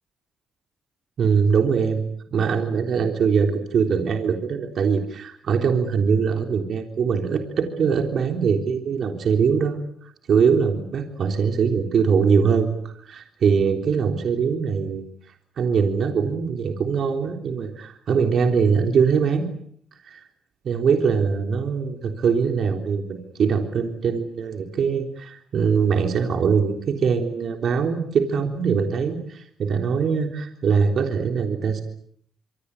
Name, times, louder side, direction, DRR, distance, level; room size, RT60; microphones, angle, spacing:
voice 1, 1.2-2.0 2.3-9.8 10.3-15.0 15.6-19.5 20.0-20.2 20.6-31.8, right 6 dB, 65° right, 5 dB, 3.6 m, -22 dB
27.0 x 24.0 x 8.3 m, 0.64 s
supercardioid pair, 60°, 0 cm